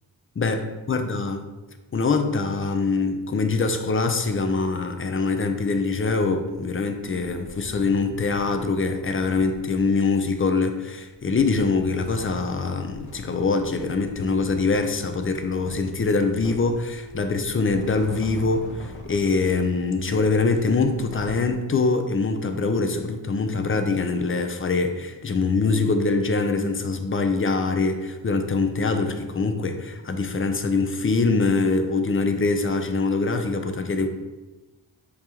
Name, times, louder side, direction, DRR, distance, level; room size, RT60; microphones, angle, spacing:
voice 1, 0.4-1.4 1.9-34.1, left 3 dB, 30° left, 6 dB, 0.4 m, -24 dB
sound 1, 7.0-10.6 11.1-21.5, left 2 dB, 70° left, 0.7 m, -43 dB
4.7 x 2.3 x 2.8 m, 1.1 s
cardioid pair, 45°, 47 cm